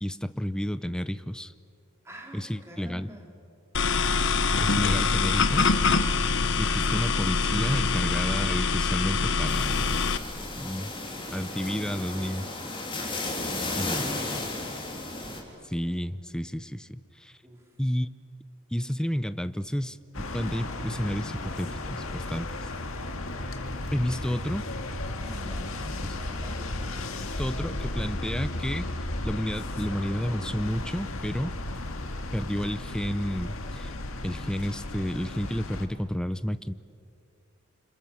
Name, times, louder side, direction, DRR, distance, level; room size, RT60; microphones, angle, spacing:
voice 1, 0.0-1.5 2.3-3.1 4.6-5.8 6.6-10.0 10.5-10.9 11.3-12.5 13.8-14.3 15.6-17.4 17.8-18.1 18.7-22.5 23.9-24.7 26.0-26.2 27.4-28.9 29.2-31.5 32.3-33.9 34.2-36.7, equal, 5° left, 13 dB, 0.6 m, -31 dB
voice 2, 2.0-3.3 13.1-14.5 17.4-17.7 24.0-24.3 25.2-27.0, equal, 15° right, 0 dB, 3.3 m, -47 dB
sound 1, 3.7-10.2, left 4 dB, 60° left, 1.0 m, -24 dB
sound 2, 9.5-15.4, left 2 dB, 25° left, 3.3 m, -34 dB
sound 3, 20.1-35.9, left 2 dB, 75° left, 1.8 m, -34 dB
29.5 x 26.0 x 7.2 m, 2.4 s
head